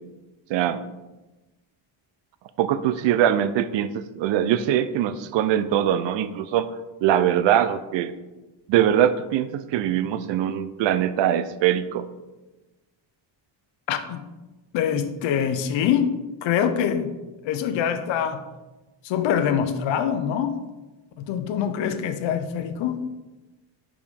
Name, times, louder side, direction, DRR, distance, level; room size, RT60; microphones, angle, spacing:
voice 1, 0.5-0.8 2.6-6.7 7.0-8.1 8.7-12.1, right 10 dB, 70° right, 13 dB, 0.6 m, -22 dB
voice 2, 13.9-14.2 14.7-16.2 16.4-17.1 17.4-18.4 19.0-20.6 21.2-23.0, left 8 dB, 70° left, 9 dB, 0.7 m, -24 dB
5.2 x 4.9 x 5.2 m, 1.1 s
cardioid pair, 175°, 47 cm